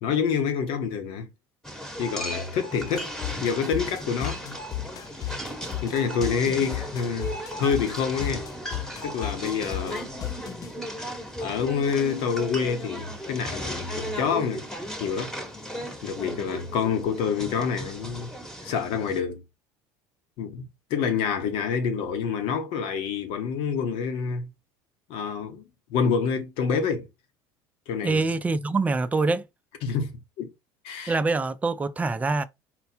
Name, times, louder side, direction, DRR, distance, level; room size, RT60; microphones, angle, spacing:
voice 1, 0.0-1.3 2.0-4.6 5.8-8.5 9.0-10.1 11.4-14.6 15.0-15.3 16.0-18.3 18.6-19.4 20.4-20.6 20.9-24.5 25.1-25.6 25.9-27.1 27.9-28.2 29.8-30.5 30.8-31.2, left 6 dB, 70° left, 1.1 m, -27 dB
sound 1, 1.6-19.2, equal, 5° left, 1.1 m, -36 dB
sound 2, 2.8-10.7, left 14 dB, 40° left, 0.4 m, -35 dB
voice 2, 28.0-29.5 31.1-32.4, right 3 dB, 15° right, 0.5 m, -25 dB
4.3 x 2.3 x 4.3 m
supercardioid pair, 110°, 10 cm